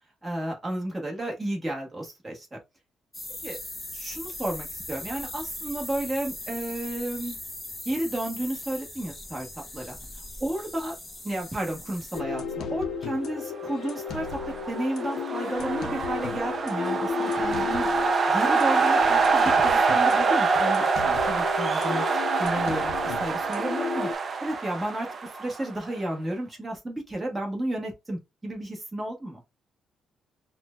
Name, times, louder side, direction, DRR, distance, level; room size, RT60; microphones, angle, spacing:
voice 1, 0.2-2.6 3.4-3.6 3.9-7.4 7.8-9.5 9.7-10.0 10.4-11.0 11.2-14.4 14.7-17.9 18.3-24.1 24.4-29.4, right 1 dB, 10° right, 1.1 m, -32 dB
sound 1, 3.1-12.2, left 1 dB, 10° left, 0.6 m, -39 dB
sound 2, 12.1-24.1, left 6 dB, 60° left, 0.5 m, -33 dB
sound 3, 14.0-25.9, right 4 dB, 30° right, 0.4 m, -25 dB
5.8 x 2.1 x 2.2 m
cardioid pair, 180°, 0 cm